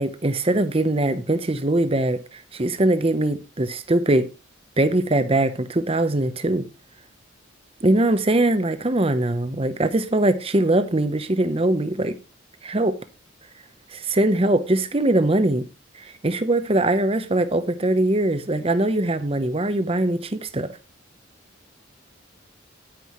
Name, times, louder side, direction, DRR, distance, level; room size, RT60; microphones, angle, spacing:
voice 1, 0.0-4.3 4.8-6.6 7.8-12.2 12.6-13.0 13.9-15.6 16.0-20.8, right 1 dB, 30° right, 0.8 m, -22 dB
10.0 x 9.4 x 3.1 m
head